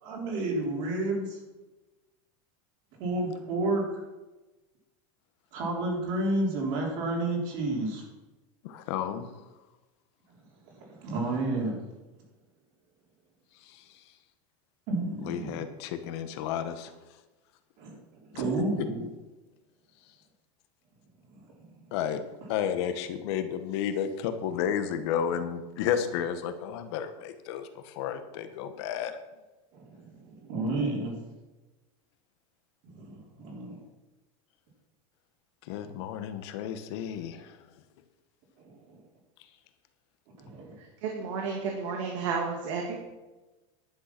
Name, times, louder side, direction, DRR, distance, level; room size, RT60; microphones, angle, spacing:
voice 1, 0.0-1.4 3.0-4.0 5.5-8.0 10.8-11.8 14.9-15.6 17.8-19.0 21.3-21.4 29.7-31.1 32.8-33.8 38.6-39.0 40.4-40.8, right 2 dB, 45° right, -1 dB, 3.7 m, -31 dB
voice 2, 8.6-9.2 13.6-14.0 15.2-16.9 18.3-18.9 21.9-22.2 22.5-29.2 35.6-37.6, left 9 dB, 55° left, 9 dB, 1.3 m, -32 dB
voice 3, 41.0-43.0, right 5 dB, 70° right, 0 dB, 2.3 m, -31 dB
11.0 x 9.3 x 6.0 m, 1.1 s
supercardioid pair, 170°, 17 cm